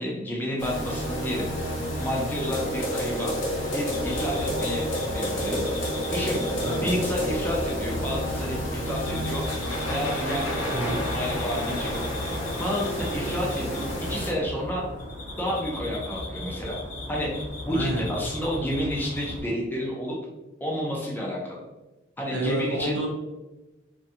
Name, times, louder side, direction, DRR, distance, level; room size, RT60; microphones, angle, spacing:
voice 1, 0.0-1.5 2.0-3.3 3.7-4.9 5.1-5.6 6.1-6.4 6.8-9.5 9.9-12.1 12.6-14.9 15.4-16.8 17.1-17.3 17.6-20.2 20.6-21.6 22.2-23.0, equal, 10° left, -3 dB, 0.4 m, -30 dB
sound 1, 0.6-14.3, equal, 75° left, 0.8 m, -30 dB
sound 2, 3.9-19.4, left 1 dB, 40° left, 0.8 m, -37 dB
voice 2, 10.7-11.0 17.7-18.1 22.3-23.1, right 1 dB, 70° right, 0 dB, 0.6 m, -28 dB
2.6 x 2.3 x 2.7 m, 1.0 s
head